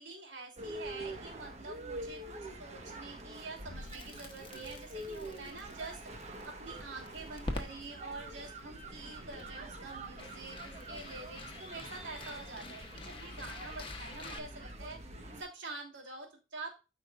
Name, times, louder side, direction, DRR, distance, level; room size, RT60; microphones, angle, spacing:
voice 1, 0.0-15.0 15.4-16.8, right 3 dB, 85° right, 0 dB, 3.2 m, -46 dB
sound 1, 0.6-15.4, right 1 dB, 35° right, 1.3 m, -46 dB
Crackle, 3.6-14.4, left 2 dB, 30° left, 1.1 m, -47 dB
13.5 x 5.2 x 2.5 m, 0.30 s
head